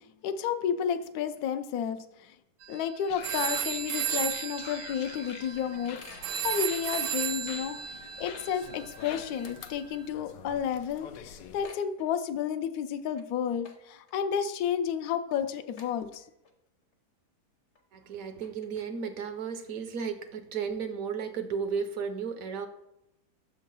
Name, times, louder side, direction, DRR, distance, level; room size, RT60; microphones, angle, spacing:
voice 1, 0.2-2.3 2.7-16.2, left 8 dB, 70° left, 8 dB, 1.0 m, -32 dB
sound 1, 2.6-2.9 3.2-9.9, right 9 dB, 80° right, 1.3 m, -34 dB
sound 2, 3.1-11.7, left 8 dB, 90° left, 1.3 m, -47 dB
sound 3, 4.9-7.4 7.8-7.9 8.2-9.9 10.1-10.5 10.8-10.9 11.1-12.5 13.0-13.2 13.6-14.1 14.6-14.7 15.3-15.4 15.8-16.5 16.9-17.0 17.8-17.9 18.2-19.1, left 4 dB, 45° left, 0.7 m, -50 dB
voice 2, 17.9-22.7, right 6 dB, 65° right, 8 dB, 1.0 m, -34 dB
6.5 x 3.6 x 5.4 m, 0.87 s
omnidirectional pair, 1.8 m